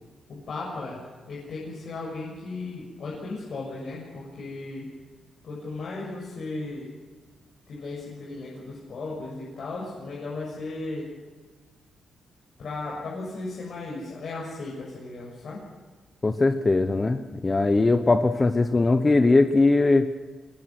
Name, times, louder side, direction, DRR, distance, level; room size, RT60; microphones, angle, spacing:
voice 1, 0.3-4.9 5.4-6.9 7.7-11.1 12.6-15.6, left 3 dB, 55° left, -4 dB, 6.5 m, -36 dB
voice 2, 16.2-20.1, left 3 dB, 20° left, 8 dB, 1.0 m, -20 dB
24.5 x 20.5 x 6.2 m, 1.4 s
cardioid pair, 135°, 0 cm